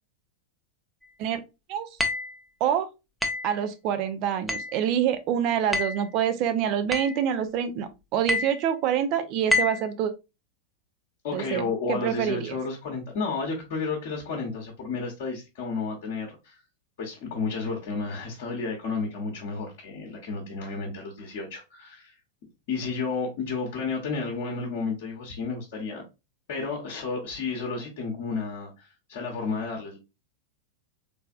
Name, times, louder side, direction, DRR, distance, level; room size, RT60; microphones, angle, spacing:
sound 1, 2.0-2.4 3.2-3.5 4.5-4.8 5.7-6.1 6.9-7.2 8.3-8.6 9.5-9.9, left 2 dB, ahead, 0.6 m, -27 dB
voice 1, 3.4-10.1 11.3-11.6 11.9-12.6, right 9 dB, 40° right, 0.5 m, -26 dB
voice 2, 11.2-16.6 17.0-22.1 22.7-26.0 26.5-30.0, left 4 dB, 50° left, 1.0 m, -32 dB
3.4 x 3.3 x 2.4 m
figure-of-eight pair, 90°, 0 cm